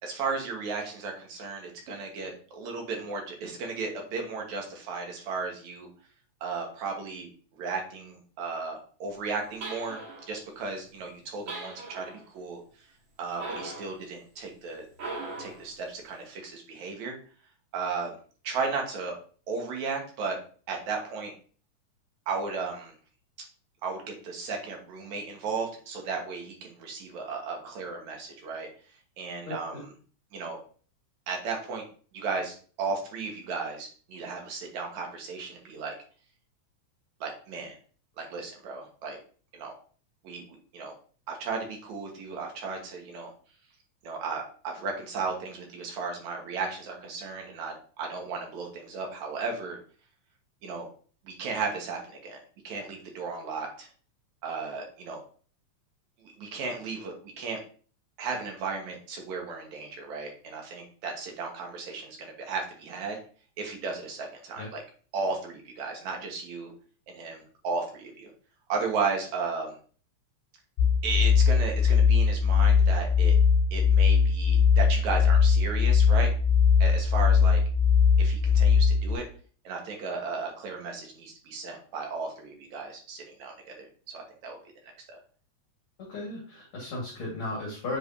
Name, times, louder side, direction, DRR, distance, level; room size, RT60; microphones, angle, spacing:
voice 1, 0.0-5.9 6.4-7.3 7.6-12.6 13.2-14.9 15.4-17.2 17.7-18.2 18.4-19.1 19.5-20.4 20.7-21.3 22.3-22.9 23.8-28.7 29.2-29.9 30.3-30.6 31.3-31.8 32.1-35.9 37.2-37.8 38.2-39.2 39.5-39.7 40.2-40.4 40.7-40.9 41.3-43.3 44.0-49.8 50.6-50.9 51.2-52.4 52.6-53.9 54.4-55.2 56.2-57.6 58.2-63.2 63.6-64.8 65.1-66.7 67.1-68.3 68.7-69.7 71.0-73.4 73.7-76.3 76.8-77.6 78.2-79.3 79.6-84.6 85.1-85.2, right 4 dB, 75° right, 1 dB, 2.7 m, -35 dB
sound 1, 9.6-10.3 11.5-12.2 13.4-14.0 14.9-15.7, right 3 dB, 50° right, 1.9 m, -39 dB
voice 2, 29.5-29.8 64.6-64.7 86.1-88.0, left 2 dB, 50° left, -4 dB, 2.4 m, -35 dB
sound 2, 70.8-79.2, left 6 dB, 80° left, 2.1 m, -20 dB
7.6 x 4.9 x 2.7 m, 0.42 s
omnidirectional pair, 3.3 m